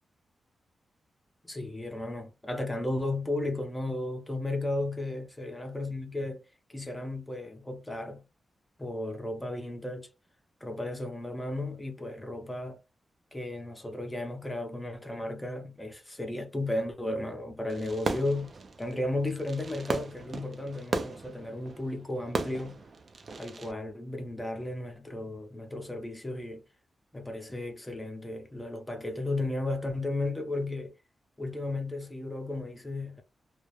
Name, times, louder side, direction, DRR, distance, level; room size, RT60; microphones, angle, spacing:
voice 1, 1.5-6.4 6.7-8.2 8.8-10.1 10.6-12.8 13.3-18.5 18.8-22.8 23.4-26.6 27.1-30.9 31.4-33.2, left 2 dB, 10° left, 0.6 m, -34 dB
Fireworks, 17.7-23.7, right 3 dB, 45° right, 0.3 m, -37 dB
2.2 x 2.0 x 2.8 m
wide cardioid pair, 170°, 0 cm